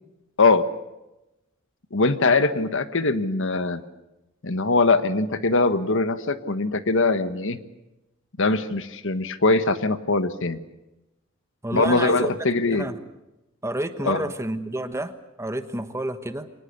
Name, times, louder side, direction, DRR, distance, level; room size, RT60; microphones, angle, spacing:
voice 1, 1.9-3.8 4.4-7.6 8.4-10.6 11.7-12.8 14.0-14.2, left 3 dB, 60° left, 11 dB, 1.3 m, -22 dB
voice 2, 11.6-12.3 12.7-13.0 13.6-15.1 15.4-16.5, right 1 dB, 15° right, 9 dB, 1.2 m, -29 dB
25.0 x 19.5 x 8.2 m, 0.97 s
head